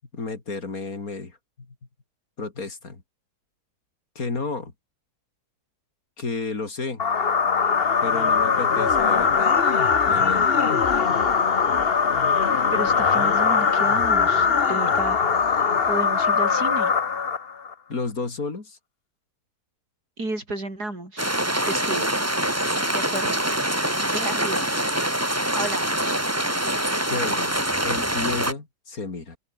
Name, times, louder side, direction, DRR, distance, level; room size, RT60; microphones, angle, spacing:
voice 1, 0.1-1.7 2.4-3.0 4.2-4.7 6.2-7.0 8.0-9.6 10.1-10.7 17.9-18.8 27.1-27.6 27.8-29.4, left 3 dB, 65° left, 3.6 m, -32 dB
sound 1, 7.0-17.7, left 6 dB, 40° left, 1.3 m, -21 dB
voice 2, 12.7-15.2 15.9-16.9 20.2-21.3 21.7-22.1 22.9-23.4 24.1-24.8 25.6-26.2, right 2 dB, 85° right, 7.6 m, -32 dB
sound 2, 21.2-28.5, right 1 dB, 10° right, 2.9 m, -24 dB
open air
omnidirectional pair, 1.6 m